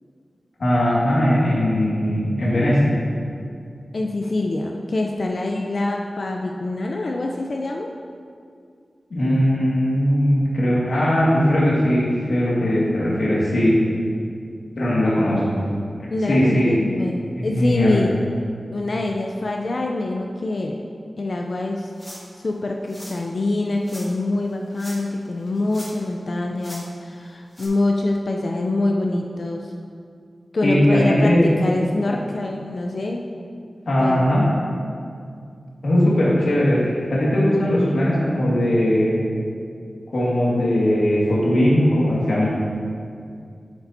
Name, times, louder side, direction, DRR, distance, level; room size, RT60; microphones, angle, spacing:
voice 1, 0.6-2.9 9.1-13.8 14.8-15.6 16.2-16.7 17.4-18.0 30.6-31.5 33.9-34.4 35.8-39.2 40.1-42.5, equal, 75° left, -7 dB, 1.8 m, -19 dB
voice 2, 3.9-7.9 16.1-18.1 18.7-20.8 21.2-21.9 22.4-29.7 30.5-31.3 31.6-33.2 34.0-34.2, left 2 dB, 55° left, 1 dB, 0.4 m, -25 dB
sound 1, 21.9-22.4 22.9-23.2 23.8-24.1 24.7-25.2 25.5-26.1 26.6-26.8 27.5-27.7, equal, 10° left, 1.4 m, -40 dB
8.8 x 6.8 x 2.7 m, 2.3 s
wide cardioid pair, 100°, 0 cm